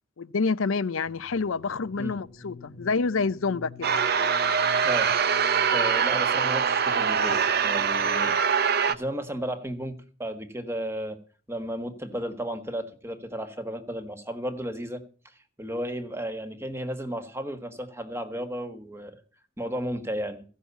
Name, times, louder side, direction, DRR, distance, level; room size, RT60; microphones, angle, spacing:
voice 1, 0.2-3.9, left 4 dB, 70° left, 0.6 m, -28 dB
sound 1, 1.1-8.7, left 3 dB, 30° left, 0.9 m, -48 dB
sound 2, 3.8-9.0, right 6 dB, 50° right, 0.7 m, -23 dB
voice 2, 5.7-8.3 8.8-11.2 11.5-19.2 19.6-20.4, equal, 10° right, 1.4 m, -34 dB
15.5 x 6.4 x 8.1 m
head